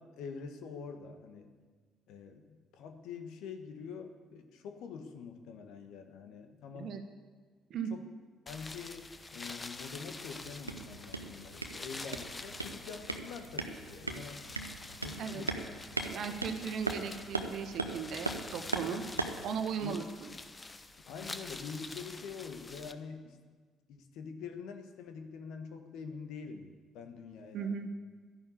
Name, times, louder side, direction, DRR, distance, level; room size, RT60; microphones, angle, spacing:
voice 1, 0.0-1.5 2.1-6.9 7.9-8.1 8.4-14.5 15.0-15.7 16.0-16.4 18.9-19.3 19.8-20.0 21.1-23.4 23.9-27.8, left 5 dB, 60° left, 7 dB, 1.4 m, -45 dB
sound 1, 8.5-22.9, left 3 dB, 25° left, 0.9 m, -47 dB
sound 2, 10.4-19.5, right 2 dB, 90° right, 0.7 m, -39 dB
voice 2, 16.1-19.0 19.4-20.3 27.5-27.9, right 7 dB, 55° right, 6 dB, 1.5 m, -37 dB
12.5 x 10.5 x 8.4 m, 1.5 s
figure-of-eight pair, 45°, 0 cm